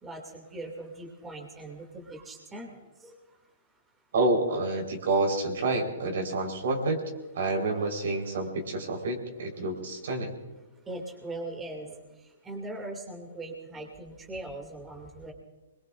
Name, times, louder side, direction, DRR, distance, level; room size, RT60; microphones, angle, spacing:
voice 1, 0.0-2.8 10.9-12.0 12.4-15.3, right 2 dB, 15° right, 1 dB, 2.5 m, -40 dB
voice 2, 4.1-7.0 7.3-10.3, right 2 dB, 65° right, 2 dB, 4.2 m, -28 dB
24.5 x 22.0 x 2.5 m, 1.1 s
hypercardioid pair, 135°, 0 cm